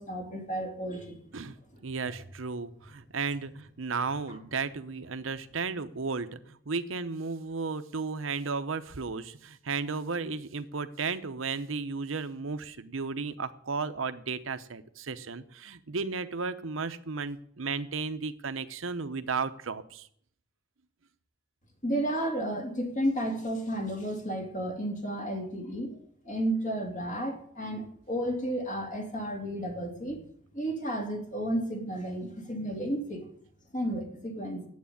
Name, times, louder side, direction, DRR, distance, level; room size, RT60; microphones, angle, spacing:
voice 1, 0.0-1.2 2.0-2.1 21.8-26.0 26.2-30.3 30.5-33.3 33.7-34.7, right 1 dB, 40° left, 2 dB, 2.9 m, -32 dB
voice 2, 1.8-20.1, right 4 dB, 75° right, 10 dB, 0.8 m, -34 dB
9.5 x 8.4 x 8.6 m, 0.65 s
head